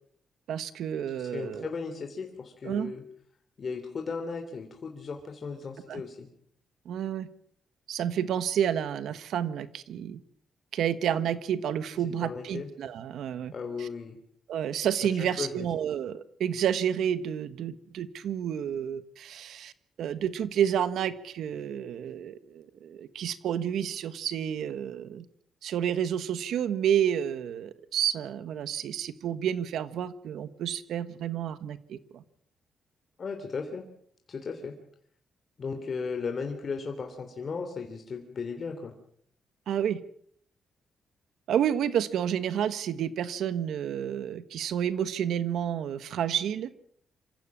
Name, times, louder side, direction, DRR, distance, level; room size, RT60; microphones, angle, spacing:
voice 1, 0.5-1.7 2.6-2.9 5.9-6.0 6.8-7.3 7.9-10.2 10.7-13.5 13.8-13.9 14.5-19.7 20.0-25.2 25.6-32.2 39.7-40.0 41.5-46.7, right 9 dB, 80° right, 14 dB, 1.3 m, -30 dB
voice 2, 1.1-3.0 3.6-6.3 12.0-12.7 13.5-14.2 15.0-15.7 33.2-33.8 34.3-34.7 35.6-38.9, left 5 dB, 45° left, 4 dB, 3.2 m, -36 dB
27.0 x 15.5 x 7.4 m, 0.66 s
cardioid pair, 105°, 0 cm